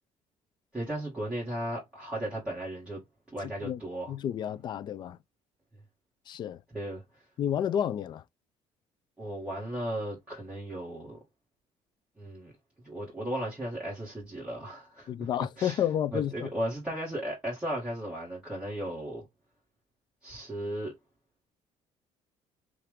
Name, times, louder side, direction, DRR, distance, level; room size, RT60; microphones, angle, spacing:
voice 1, 0.7-3.0 3.3-4.2 6.7-7.0 9.2-11.2 12.2-12.5 12.8-15.3 15.6-15.8 16.1-19.3 20.2-20.9, right 1 dB, 10° right, 2.0 m, -35 dB
voice 2, 4.1-5.2 6.3-6.6 7.4-8.2 15.1-16.5, left 9 dB, 40° left, 0.4 m, -30 dB
5.7 x 2.5 x 3.5 m
cardioid pair, 150°, 12 cm